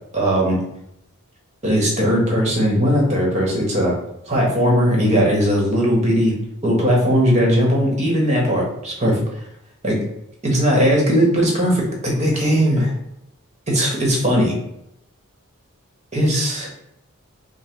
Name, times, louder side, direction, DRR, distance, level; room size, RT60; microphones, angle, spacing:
voice 1, 0.1-0.6 1.6-3.9 4.2-6.3 6.6-9.2 9.8-10.0 10.4-12.9 13.7-14.5 16.1-16.9, equal, 30° right, -2 dB, 1.1 m, -18 dB
5.4 x 2.1 x 3.0 m, 0.79 s
head